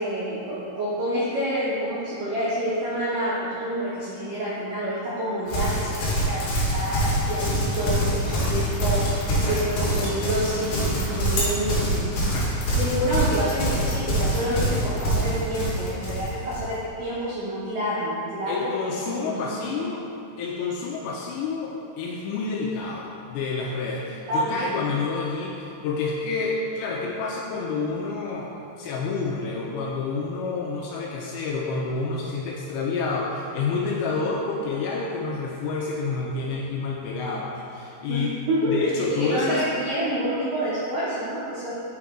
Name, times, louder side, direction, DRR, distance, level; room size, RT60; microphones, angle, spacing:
voice 1, 0.0-12.2 12.8-19.8 24.3-24.8 38.1-38.7 39.1-41.7, right 1 dB, 80° right, -9 dB, 1.9 m, -28 dB
Livestock farm animals working animals, 5.5-16.7, equal, 60° left, 2.2 m, -25 dB
voice 2, 12.2-12.6 18.5-20.0 20.4-28.5 28.8-38.3 38.7-39.6, left 4 dB, 80° left, -3 dB, 2.6 m, -29 dB
6.0 x 5.8 x 3.6 m, 2.8 s
omnidirectional pair, 5.5 m